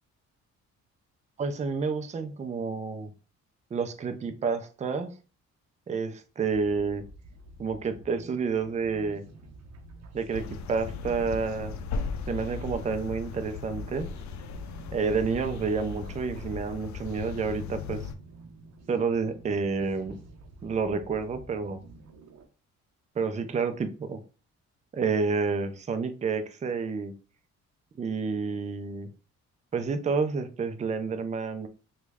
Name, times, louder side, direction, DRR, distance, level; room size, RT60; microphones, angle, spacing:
voice 1, 1.4-3.1 3.7-5.1 5.9-7.0 7.6-9.2 10.1-11.7 12.3-14.1 14.9-18.0 18.9-20.2 20.6-21.8 23.2-24.2 24.9-27.1 28.0-29.1 29.7-31.7, right 5 dB, 25° right, 8 dB, 0.4 m, -29 dB
sound 1, 6.5-22.5, right 2 dB, 60° right, 0.7 m, -50 dB
sound 2, 10.3-18.1, left 5 dB, 70° left, 0.5 m, -37 dB
3.0 x 2.3 x 3.4 m, 0.35 s
cardioid pair, 90°, 30 cm